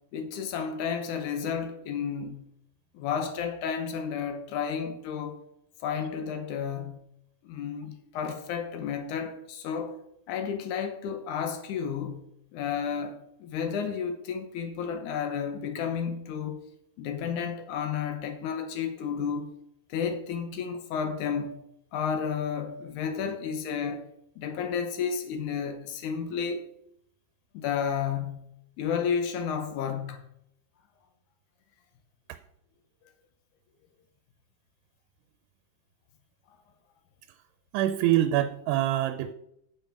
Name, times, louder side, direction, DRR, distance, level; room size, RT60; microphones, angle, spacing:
voice 1, 0.1-2.5 2.9-5.4 5.8-7.0 7.4-10.0 10.3-16.6 17.0-19.5 19.9-21.6 21.9-24.1 24.4-26.6 27.5-28.5 28.8-30.2, left 7 dB, 80° left, 1.7 m, -32 dB
voice 2, 37.7-39.3, right 13 dB, 85° right, 2.6 m, -25 dB
11.0 x 5.7 x 5.0 m
omnidirectional pair, 4.9 m